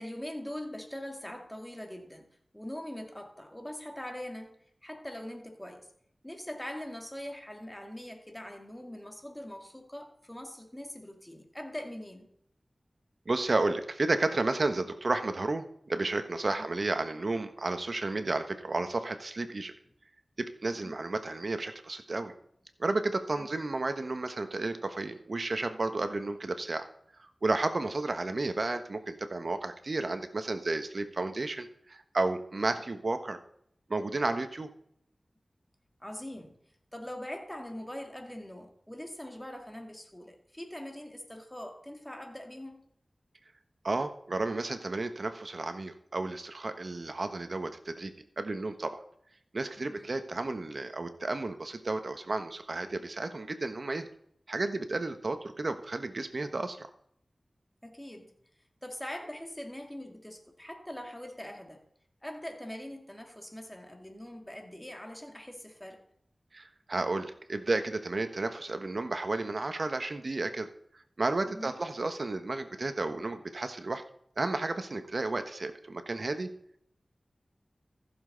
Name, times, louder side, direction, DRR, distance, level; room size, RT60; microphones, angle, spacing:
voice 1, 0.0-2.3 2.5-4.6 4.8-5.9 6.2-12.3 16.6-16.7 20.7-20.9 23.3-23.5 32.5-32.8 36.0-36.5 36.9-42.8 49.8-50.1 57.8-58.3 58.8-61.8 62.2-66.0 71.5-71.8, left 1 dB, 10° left, 3 dB, 2.4 m, -42 dB
voice 2, 13.3-19.7 20.4-22.3 22.8-26.9 27.2-33.4 33.9-34.7 43.8-49.0 49.5-54.1 54.5-56.9 66.5-70.7 71.2-74.0 74.4-76.5, right 2 dB, 60° right, 9 dB, 1.2 m, -32 dB
15.0 x 7.3 x 4.0 m, 0.68 s
cardioid pair, 45°, 0 cm